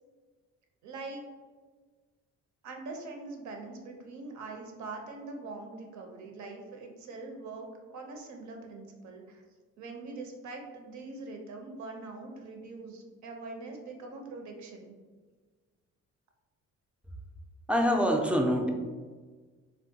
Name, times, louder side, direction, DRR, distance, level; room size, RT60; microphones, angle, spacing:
voice 1, 0.8-1.2 2.6-9.4 9.8-15.0, right 3 dB, 70° right, 2 dB, 0.6 m, -43 dB
voice 2, 17.7-18.7, equal, 5° right, 2 dB, 0.3 m, -25 dB
3.5 x 2.2 x 2.7 m, 1.4 s
cardioid pair, 90°, 30 cm